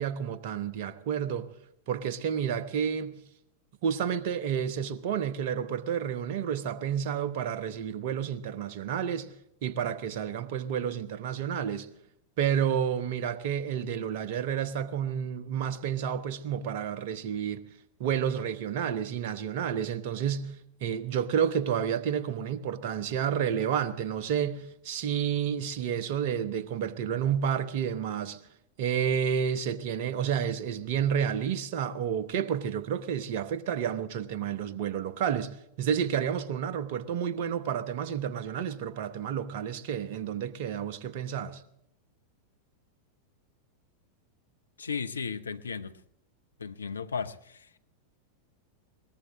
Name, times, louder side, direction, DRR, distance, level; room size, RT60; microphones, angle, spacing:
voice 1, 0.0-1.5 1.9-3.2 3.8-9.3 9.6-11.9 12.4-17.7 18.0-20.5 20.8-28.4 28.8-41.6, right 8 dB, 50° right, 1.0 m, -30 dB
voice 2, 44.8-46.0 46.6-47.8, left 5 dB, 75° left, 0.8 m, -35 dB
21.5 x 18.5 x 3.0 m
figure-of-eight pair, 90°, 0 cm